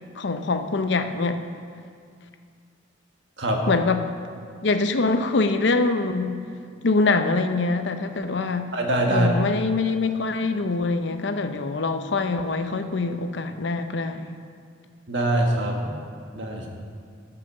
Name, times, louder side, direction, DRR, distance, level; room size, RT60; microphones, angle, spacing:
voice 1, 0.2-1.4 3.7-4.0 4.6-6.4 6.8-8.7 9.1-14.3, left 3 dB, 65° left, 8 dB, 0.6 m, -24 dB
voice 2, 8.7-9.3 15.1-15.9 16.3-16.7, right 1 dB, 65° right, 1 dB, 1.5 m, -23 dB
12.5 x 5.8 x 6.5 m, 2.2 s
head